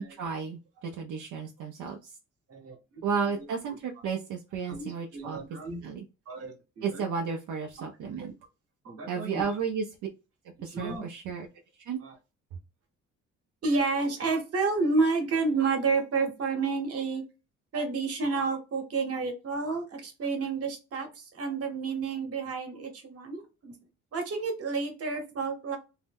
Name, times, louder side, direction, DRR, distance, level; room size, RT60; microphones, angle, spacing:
voice 1, 0.0-2.1 3.0-5.4 5.8-6.0 6.8-8.3 9.1-9.8 10.6-11.5 11.9-12.0, right 6 dB, 75° right, 1 dB, 0.6 m, -33 dB
voice 2, 2.5-3.0 3.4-3.5 4.7-5.8 6.3-7.1 7.8-7.9 8.2-8.3 8.8-9.5 10.6-11.0 12.0-12.2 13.6-17.2 17.7-23.7 24.1-25.8, right 4 dB, 50° right, 4 dB, 1.1 m, -30 dB
2.7 x 2.1 x 3.4 m, 0.29 s
cardioid pair, 90°, 30 cm